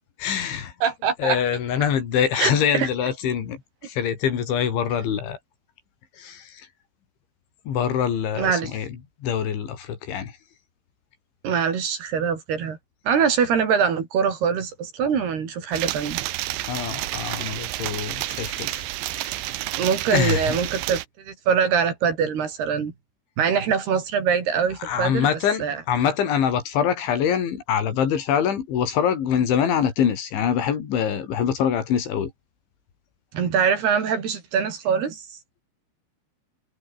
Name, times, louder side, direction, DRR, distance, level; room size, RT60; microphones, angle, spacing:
voice 1, 0.2-0.7 1.2-5.4 6.2-6.7 7.7-10.4 16.7-19.6 20.1-20.6 24.8-32.3, left 8 dB, 80° left, 5.9 m, -24 dB
voice 2, 0.8-1.4 2.4-2.9 8.4-8.7 11.4-12.8 13.1-16.2 19.8-22.9 23.4-25.3 25.6-25.8 33.3-35.2, right 7 dB, 60° right, 5.5 m, -23 dB
sound 1, 15.7-21.1, right 17 dB, 80° right, 3.3 m, -30 dB
omnidirectional pair, 5.4 m